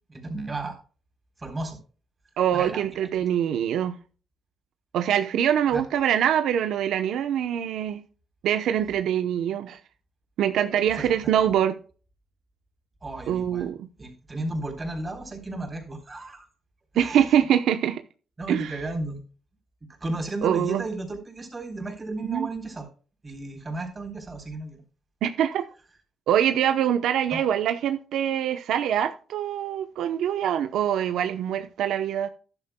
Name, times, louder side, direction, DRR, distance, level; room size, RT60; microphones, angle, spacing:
voice 1, 0.1-0.8 1.4-1.8 2.5-2.9 5.7-5.8 10.9-11.2 13.0-13.7 14.0-16.5 16.9-17.2 18.4-19.2 20.0-22.9 23.2-24.8 27.3-27.4, right 2 dB, 25° right, 3.6 m, -33 dB
voice 2, 2.4-4.0 4.9-8.0 8.4-9.8 10.4-11.8 13.3-13.9 17.0-18.0 18.5-18.8 20.4-20.8 22.2-22.5 25.2-25.6 26.3-32.3, right 9 dB, 80° right, 0.8 m, -24 dB
13.0 x 10.5 x 2.2 m
cardioid pair, 90°, 0 cm